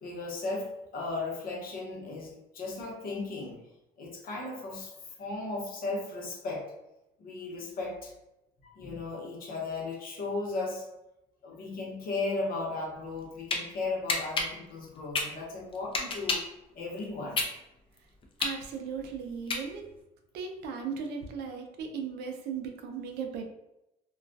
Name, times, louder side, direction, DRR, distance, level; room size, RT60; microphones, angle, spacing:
voice 1, 0.0-3.6 4.0-6.6 7.2-8.1 8.6-10.8 11.4-16.4 16.7-17.4, left 3 dB, 60° left, -2 dB, 0.8 m, -36 dB
sound 1, 13.1-13.6 14.1-16.6 17.0-20.0, left 3 dB, 30° left, 0.4 m, -31 dB
voice 2, 18.4-19.8 20.3-23.5, right 6 dB, 80° right, 4 dB, 0.5 m, -37 dB
2.3 x 2.2 x 2.5 m, 0.90 s
cardioid pair, 110°, 17 cm